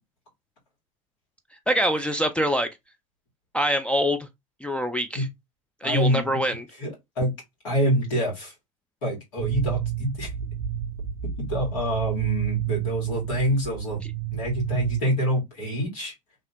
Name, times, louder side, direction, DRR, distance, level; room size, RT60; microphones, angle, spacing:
voice 1, 1.7-2.7 3.5-4.3 4.6-5.3 5.8-6.6, equal, 5° left, 0.4 m, -24 dB
voice 2, 5.8-6.4 6.8-7.3 7.6-8.5 9.0-10.3 11.4-14.0 14.3-16.1, equal, 70° left, 2.0 m, -26 dB
sound 1, 9.4-15.0, right 11 dB, 60° right, 0.5 m, -30 dB
2.9 x 2.7 x 2.8 m
hypercardioid pair, 70°, 18 cm